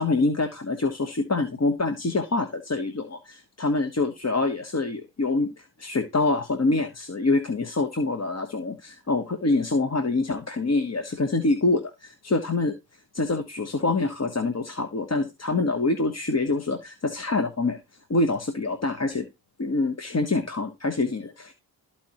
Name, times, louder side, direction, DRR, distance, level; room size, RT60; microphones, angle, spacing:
voice 1, 0.0-12.7 13.1-17.8 18.1-19.3 19.6-21.5, left 3 dB, 35° left, 7 dB, 1.1 m, -25 dB
13.0 x 4.4 x 2.9 m, 0.25 s
cardioid pair, 40°, 43 cm